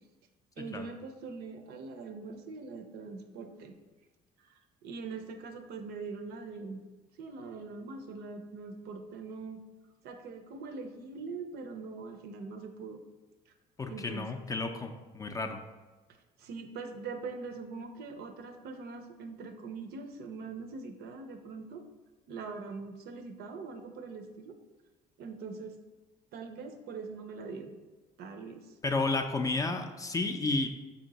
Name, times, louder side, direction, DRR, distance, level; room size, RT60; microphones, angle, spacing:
voice 1, 0.6-3.8 4.4-4.5 4.8-6.8 7.2-9.6 10.0-13.0 13.9-14.3 16.4-21.9 22.3-24.6 25.2-25.8 26.3-27.8 28.2-28.6, right 4 dB, 70° right, 7 dB, 0.5 m, -42 dB
voice 2, 13.8-15.6 28.8-30.7, left 3 dB, 20° left, 5 dB, 0.4 m, -32 dB
4.4 x 2.8 x 4.0 m, 1.2 s
cardioid pair, 110°, 17 cm